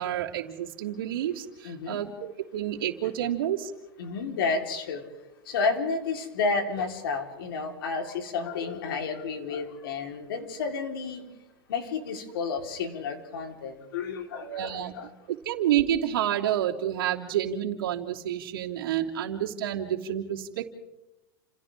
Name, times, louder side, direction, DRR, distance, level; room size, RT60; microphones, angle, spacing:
voice 1, 0.0-3.7 14.4-14.9 15.3-20.7, right 11 dB, 80° right, -2 dB, 3.1 m, -29 dB
voice 2, 1.6-2.0 4.0-5.0 5.5-11.2 11.7-15.1, left 4 dB, 80° left, 3 dB, 4.2 m, -31 dB
30.0 x 28.5 x 3.7 m, 0.98 s
supercardioid pair, 155°, 12 cm